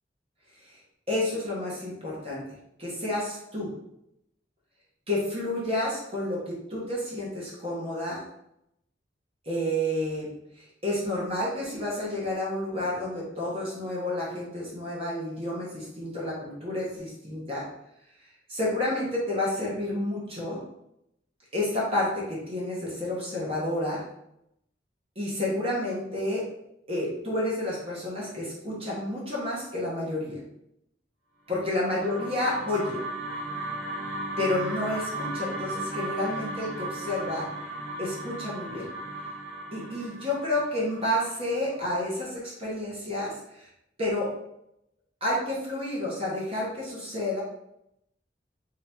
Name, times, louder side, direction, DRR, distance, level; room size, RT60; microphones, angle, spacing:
voice 1, 1.1-2.4 2.8-3.7 5.1-8.2 9.4-10.3 10.5-17.6 18.5-20.6 21.5-24.0 25.1-26.4 26.9-30.4 31.5-33.0 34.4-37.5 38.0-38.9 39.7-43.7 44.0-44.3 45.2-47.4, left 1 dB, 30° right, -5 dB, 1.2 m, -30 dB
sound 1, 31.6-41.9, right 2 dB, 65° right, 1.1 m, -36 dB
3.6 x 2.9 x 3.5 m, 0.81 s
head